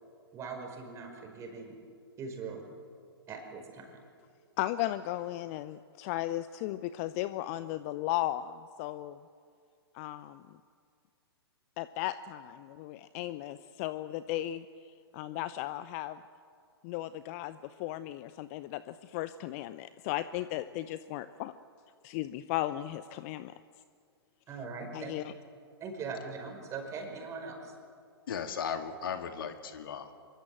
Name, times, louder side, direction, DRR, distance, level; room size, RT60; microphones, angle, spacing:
voice 1, 0.3-1.8 2.2-2.7 3.3-3.9 24.5-25.1 25.8-27.7, right 4 dB, 20° right, 3 dB, 5.3 m, -41 dB
voice 2, 4.6-9.2 9.9-10.4 11.8-14.6 15.1-16.2 16.8-21.5 22.0-23.5 24.9-25.2, left 14 dB, 35° left, 14 dB, 0.7 m, -36 dB
voice 3, 28.3-30.1, left 7 dB, 55° left, 7 dB, 2.0 m, -36 dB
25.5 x 23.0 x 7.7 m, 2.2 s
figure-of-eight pair, 115°, 14 cm